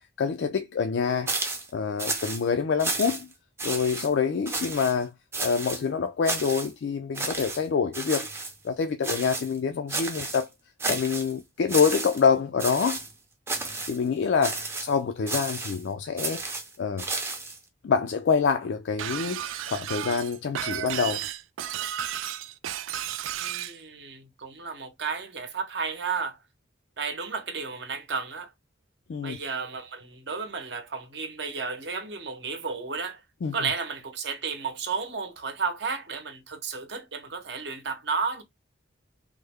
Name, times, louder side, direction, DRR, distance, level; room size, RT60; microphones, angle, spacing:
voice 1, 0.2-1.3 1.7-3.3 3.6-5.1 5.4-8.3 8.6-10.5 10.9-13.0 13.9-16.4 16.8-17.1 17.8-21.3 29.1-29.4 33.4-33.6, left 6 dB, 65° left, 0.3 m, -26 dB
sound 1, 1.3-1.7 2.0-2.4 2.8-3.3 3.6-4.1 4.5-4.9 5.3-5.8 6.2-6.7 7.2-7.6 7.9-8.5 9.0-9.6 9.9-10.4 10.8-11.3 11.7-12.3 12.6-13.1 13.5-14.0 14.4-14.9 15.3-15.8 16.2-17.6, right 3 dB, 15° right, 0.5 m, -32 dB
Shatter, 19.0-23.8, right 11 dB, 85° right, 0.3 m, -33 dB
voice 2, 23.3-26.4 27.0-28.5 29.2-33.2 33.5-38.4, right 5 dB, 60° right, 0.8 m, -33 dB
3.2 x 2.1 x 3.4 m
head